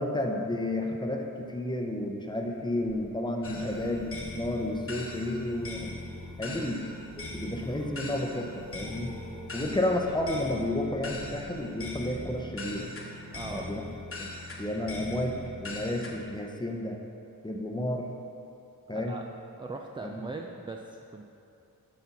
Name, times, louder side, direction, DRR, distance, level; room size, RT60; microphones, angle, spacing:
voice 1, 0.0-4.1 4.4-6.0 6.4-6.8 7.2-9.1 9.5-12.9 13.5-13.8 14.2-14.3 14.6-17.0 17.4-18.1 18.9-19.2 20.0-20.1, left 1 dB, 10° left, 1 dB, 0.7 m, -31 dB
sound 1, 2.3-15.6 16.2-16.5 16.7-16.8, right 2 dB, 80° right, 1.2 m, -51 dB
sound 2, 3.4-16.1, left 2 dB, 35° left, 1.0 m, -41 dB
voice 2, 13.3-13.7 18.9-19.3 19.5-21.2, right 3 dB, 15° right, 2 dB, 0.3 m, -40 dB
8.1 x 4.2 x 4.1 m, 2.7 s
wide cardioid pair, 75°, 36 cm